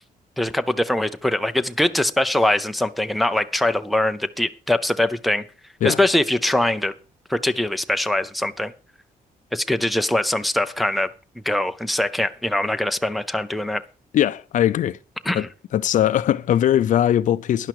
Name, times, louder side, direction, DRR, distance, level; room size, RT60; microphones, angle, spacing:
voice 1, 0.4-5.4 5.8-6.9 7.3-8.7 9.5-11.1 11.4-13.8 15.2-15.5, left 1 dB, ahead, 0.6 m, -22 dB
voice 2, 14.1-15.0 15.3-15.5 15.7-17.7, left 11 dB, 60° left, 0.5 m, -20 dB
12.0 x 10.5 x 4.8 m
cardioid pair, 170°, 15 cm